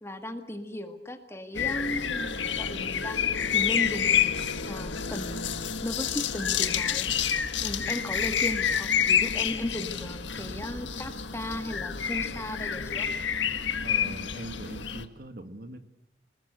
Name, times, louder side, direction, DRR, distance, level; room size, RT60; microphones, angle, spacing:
voice 1, 0.0-7.1 7.6-13.1, left 1 dB, 15° left, 7 dB, 1.9 m, -36 dB
sound 1, 1.5-15.1, left 8 dB, 80° left, 1.6 m, -28 dB
voice 2, 13.8-15.8, right 1 dB, 50° right, 8 dB, 2.0 m, -41 dB
28.5 x 20.5 x 8.2 m, 0.77 s
head